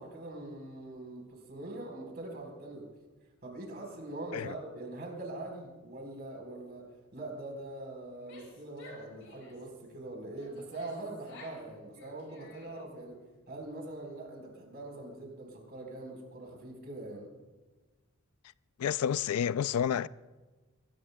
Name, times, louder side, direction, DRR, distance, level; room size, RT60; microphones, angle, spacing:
voice 1, 0.0-2.9 3.4-13.2 13.5-17.3, right 2 dB, 45° right, 4.1 m, -43 dB
Female speech woman speaking / Yell, 8.1-9.7 10.3-11.6 11.9-12.9, left 2 dB, 60° left, 5.0 m, -53 dB
voice 2, 18.8-20.1, left 8 dB, 80° left, 0.4 m, -29 dB
23.0 x 18.0 x 2.2 m
head